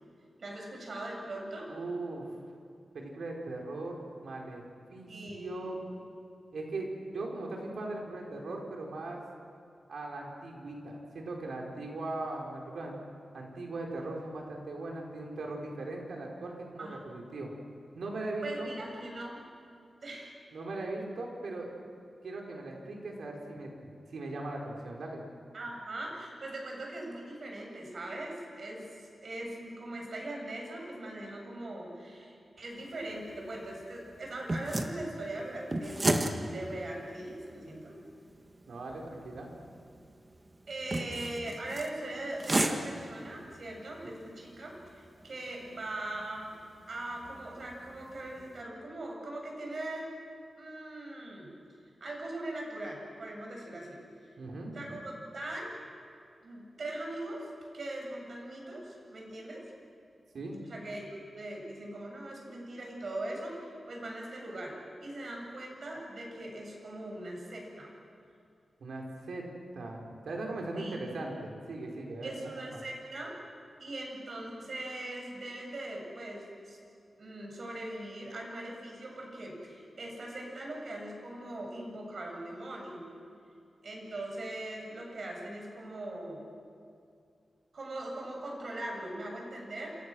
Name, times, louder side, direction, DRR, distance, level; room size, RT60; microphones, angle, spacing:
voice 1, 0.4-1.7 5.1-5.7 16.8-16.9 18.4-19.4 20.0-20.3 25.5-38.0 40.7-46.5 46.9-50.1 50.6-51.5 52.0-54.0 54.7-55.7 56.4-57.5 57.7-59.6 60.7-67.9 70.8-71.0 72.2-73.4 73.8-76.8 77.2-83.1 83.8-86.5 87.7-90.0, right 1 dB, 55° right, 0 dB, 7.7 m, -40 dB
voice 2, 1.7-2.3 2.9-4.6 4.9-5.8 6.5-9.2 9.9-13.0 13.3-17.5 17.9-18.7 20.5-21.7 22.2-25.2 38.7-39.6 40.9-41.1 54.4-54.8 60.3-60.6 68.8-69.5 69.7-72.5, right 2 dB, 80° right, 0 dB, 5.1 m, -39 dB
sound 1, 32.8-48.6, right 2 dB, 25° right, 1.9 m, -37 dB
28.5 x 28.5 x 6.5 m, 2.3 s
wide cardioid pair, 140°, 0 cm